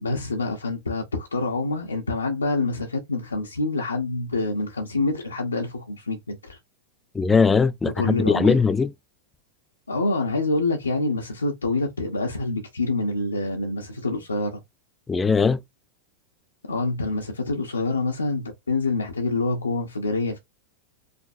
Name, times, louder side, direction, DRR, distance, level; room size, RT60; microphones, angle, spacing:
voice 1, 0.0-6.6 8.0-8.6 9.9-14.6 16.6-20.4, left 2 dB, 75° left, 0.9 m, -26 dB
voice 2, 7.1-8.9 15.1-15.6, left 5 dB, 15° left, 0.3 m, -20 dB
5.2 x 3.0 x 2.6 m
figure-of-eight pair, 90°, 0 cm